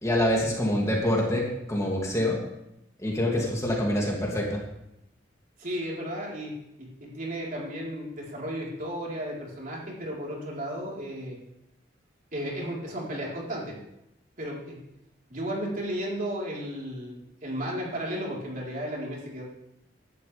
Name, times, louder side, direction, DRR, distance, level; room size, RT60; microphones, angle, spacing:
voice 1, 0.0-2.4 3.0-4.6, left 1 dB, 15° left, -2 dB, 2.5 m, -26 dB
voice 2, 5.6-6.5 6.8-11.4 12.3-13.8 14.4-14.8 15.3-19.4, equal, 45° right, -4 dB, 4.0 m, -34 dB
17.0 x 12.0 x 3.4 m, 0.84 s
head